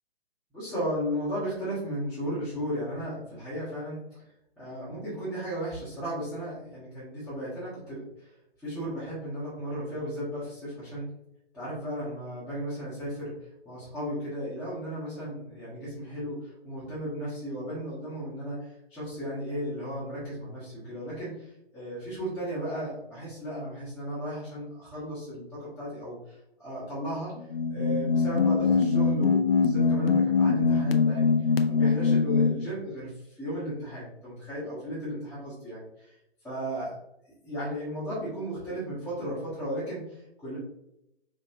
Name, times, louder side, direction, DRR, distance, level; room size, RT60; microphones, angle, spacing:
voice 1, 0.5-4.0 4.6-8.3 8.6-11.1 11.5-27.3 27.7-36.2 36.4-36.9 37.4-40.6, equal, ahead, -16 dB, 1.4 m, -35 dB
sound 1, 27.4-32.7, left 5 dB, 60° left, 0.6 m, -23 dB
5.2 x 3.2 x 2.7 m, 0.81 s
figure-of-eight pair, 145°, 32 cm